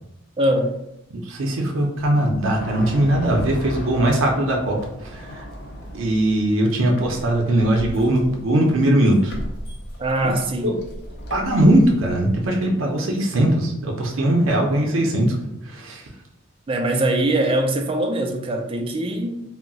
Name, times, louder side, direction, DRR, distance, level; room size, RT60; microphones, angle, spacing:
voice 1, 0.4-0.8 10.0-10.7 16.7-19.4, right 1 dB, 30° right, 4 dB, 0.3 m, -22 dB
voice 2, 1.1-5.4 5.9-9.3 10.2-10.3 10.6-10.7 11.3-15.3 15.6-16.0, right 1 dB, 80° right, 0 dB, 0.5 m, -20 dB
sound 1, 2.3-6.5 7.0-12.5, equal, 60° left, 0.6 m, -36 dB
2.3 x 2.0 x 3.8 m, 0.81 s
head